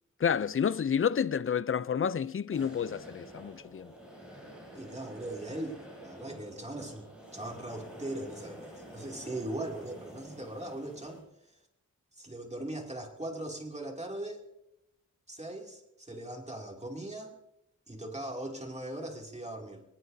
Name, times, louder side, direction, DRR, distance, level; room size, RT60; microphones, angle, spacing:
voice 1, 0.2-3.9, left 7 dB, 45° left, 0.4 m, -29 dB
sound 1, 2.5-11.2, equal, 5° right, 7.5 m, -49 dB
voice 2, 4.7-11.2 12.1-14.4 15.3-17.3 17.9-19.8, right 1 dB, 20° right, 2.6 m, -40 dB
22.0 x 20.0 x 2.7 m
wide cardioid pair, 110°, 30 cm